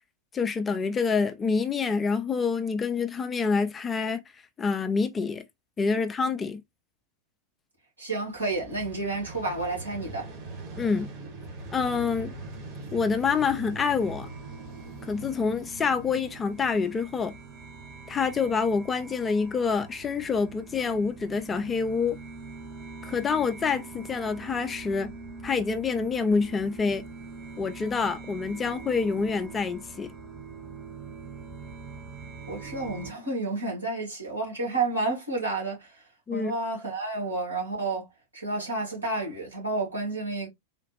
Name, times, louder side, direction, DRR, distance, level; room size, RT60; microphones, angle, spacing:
voice 1, 0.3-4.2 4.6-5.4 5.8-6.6 10.8-11.1 11.7-12.3 12.9-14.3 15.1-17.3 18.1-22.2 23.0-25.1 25.4-27.0 27.6-30.1 36.3-36.5, left 5 dB, 20° left, 0.5 m, -27 dB
voice 2, 8.0-10.3 32.5-36.0 36.3-38.1 38.3-40.5, right 3 dB, 75° right, 2.1 m, -30 dB
Vehicle, 8.3-17.3, right 2 dB, 35° right, 1.6 m, -42 dB
sound 1, 14.0-33.1, right 4 dB, 20° right, 1.2 m, -43 dB
3.8 x 2.4 x 2.9 m
figure-of-eight pair, 90°, 0 cm